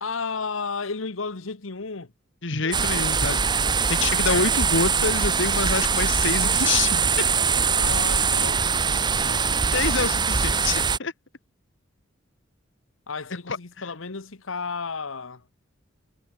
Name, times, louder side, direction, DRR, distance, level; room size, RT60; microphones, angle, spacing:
voice 1, 0.0-2.1 2.6-2.8 4.0-4.1 7.8-8.6 9.1-9.6 13.1-15.4, left 4 dB, 85° left, 1.3 m, -33 dB
voice 2, 2.4-3.4 3.9-7.0 9.7-11.1 13.5-13.6, left 4 dB, 65° left, 2.2 m, -26 dB
sound 1, 2.7-11.0, right 5 dB, 20° right, 0.8 m, -22 dB
head